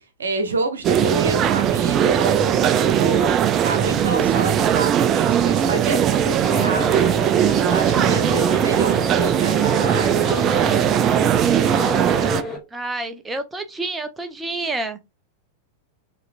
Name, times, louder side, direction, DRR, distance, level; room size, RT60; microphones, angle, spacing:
voice 1, 0.0-3.3 3.6-7.1 7.6-10.7 11.1-11.2, right 2 dB, 70° right, 1.0 m, -29 dB
sound 1, 0.8-12.4, right 9 dB, 30° right, 0.4 m, -19 dB
sound 2, 6.4-12.6, equal, 5° left, 2.0 m, -29 dB
voice 2, 12.7-15.0, right 2 dB, 10° right, 0.8 m, -28 dB
6.7 x 3.1 x 2.6 m
figure-of-eight pair, 90°, 0 cm